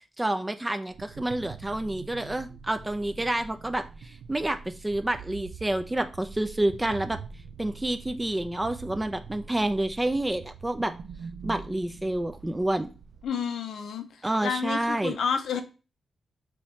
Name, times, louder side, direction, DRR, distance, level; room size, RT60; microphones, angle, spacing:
voice 1, 0.2-7.2 7.6-10.9 11.4-12.9 14.2-15.2, right 1 dB, 15° right, 0.4 m, -29 dB
sound 1, 0.9-13.3, right 5 dB, 85° right, 0.4 m, -44 dB
voice 2, 13.2-15.6, left 7 dB, 85° left, 0.6 m, -30 dB
5.5 x 3.0 x 3.1 m
cardioid pair, 80°, 0 cm